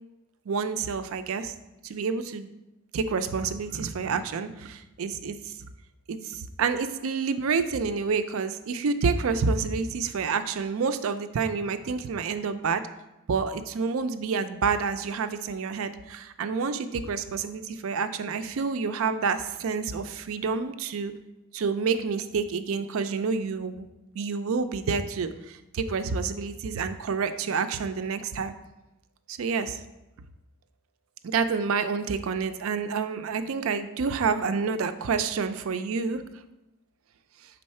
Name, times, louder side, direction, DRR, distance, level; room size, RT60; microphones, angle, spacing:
voice 1, 0.5-1.5 1.8-2.5 2.9-5.5 6.1-12.8 13.3-21.1 21.5-23.8 24.1-28.5 29.3-29.8 31.2-36.2, right 5 dB, 65° right, 10 dB, 0.4 m, -28 dB
5.5 x 4.1 x 4.2 m, 0.96 s
head